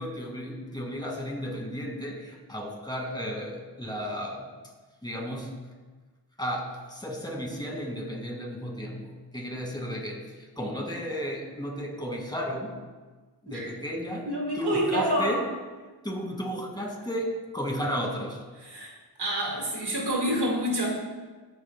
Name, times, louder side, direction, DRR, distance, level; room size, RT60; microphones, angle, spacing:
voice 1, 0.0-4.5 5.0-5.5 6.4-12.7 13.4-14.3 14.6-15.4 16.0-18.4, equal, 10° left, -1 dB, 2.1 m, -33 dB
voice 2, 14.3-15.4 18.6-18.9 19.2-20.9, right 1 dB, 75° right, -2 dB, 2.1 m, -27 dB
14.0 x 5.3 x 2.2 m, 1.3 s
cardioid pair, 50°, 41 cm